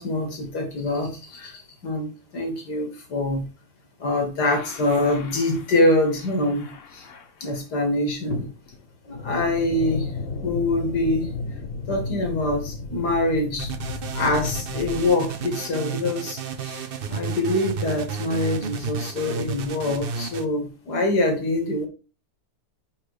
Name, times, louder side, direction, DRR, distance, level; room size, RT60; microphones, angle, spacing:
voice 1, 0.0-3.5 4.0-7.1 7.4-8.5 9.1-10.1 10.4-11.3 11.9-13.7 14.1-21.9, left 1 dB, 90° left, 3 dB, 2.5 m, -25 dB
sound 1, 4.4-7.6 8.3-15.1, left 4 dB, 55° left, 1.2 m, -34 dB
sound 2, 13.6-20.4, right 6 dB, 55° right, 0.6 m, -32 dB
5.9 x 5.0 x 4.9 m, 0.34 s
omnidirectional pair, 1.7 m